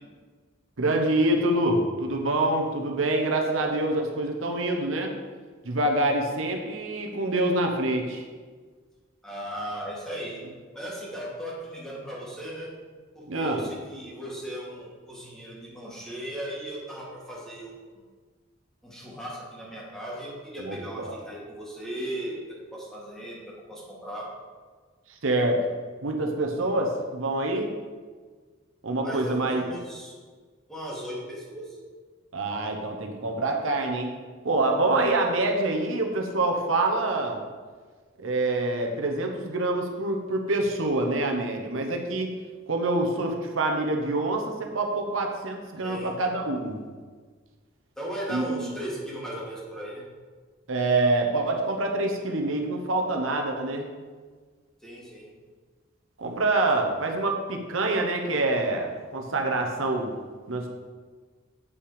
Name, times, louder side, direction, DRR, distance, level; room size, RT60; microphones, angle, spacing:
voice 1, 0.8-5.1 5.6-8.3 13.3-13.6 20.6-21.2 25.2-25.6 26.0-27.7 28.8-29.6 32.3-34.1 34.4-37.4 38.2-42.3 42.7-46.8 48.3-48.7 50.7-53.9 56.2-60.1 60.5-60.7, right 2 dB, 80° right, 2 dB, 1.0 m, -26 dB
voice 2, 9.2-10.4 10.7-12.7 13.1-17.7 18.8-22.3 22.7-24.3 29.0-30.1 30.7-31.8 45.8-46.2 48.0-50.0 54.8-55.3, right 1 dB, 5° left, -5 dB, 2.1 m, -37 dB
8.2 x 5.8 x 5.0 m, 1.5 s
head